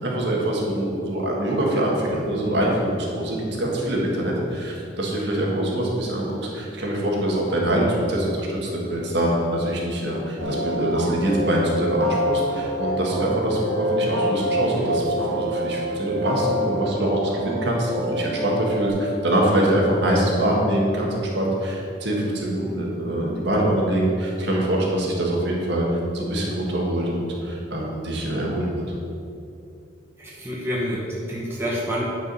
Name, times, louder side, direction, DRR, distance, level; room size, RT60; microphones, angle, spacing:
voice 1, 0.0-25.9 26.1-28.8, right 1 dB, 55° right, -2 dB, 1.6 m, -24 dB
sound 1, 10.4-18.9, equal, 75° right, 2.1 m, -26 dB
voice 2, 30.2-32.1, equal, 10° right, -5 dB, 1.0 m, -28 dB
9.4 x 5.1 x 5.5 m, 2.6 s
head